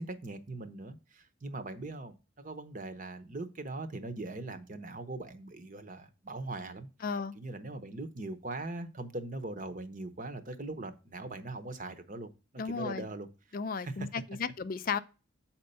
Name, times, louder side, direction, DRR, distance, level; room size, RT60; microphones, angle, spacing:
voice 1, 0.0-6.9 7.3-12.3 12.6-13.3 13.8-14.1, right 2 dB, 40° right, 0.9 m, -40 dB
voice 2, 7.0-7.4 12.6-13.1 13.5-15.0, left 5 dB, 45° left, 0.4 m, -34 dB
7.5 x 4.4 x 5.4 m
head